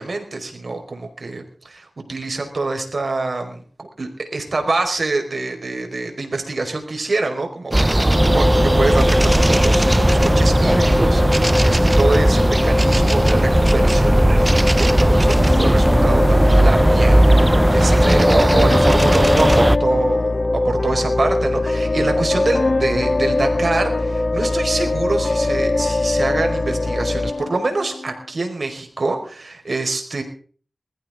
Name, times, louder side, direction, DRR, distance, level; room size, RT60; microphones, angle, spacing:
voice 1, 0.0-30.2, right 3 dB, 65° right, 4 dB, 5.0 m, -25 dB
sound 1, 7.7-19.8, right 1 dB, 20° right, 0.7 m, -16 dB
sound 2, 8.1-27.3, left 2 dB, 40° left, 1.7 m, -22 dB
sound 3, 15.2-28.3, left 3 dB, 65° left, 1.0 m, -25 dB
21.0 x 15.0 x 3.8 m, 0.43 s
cardioid pair, 45°, 0 cm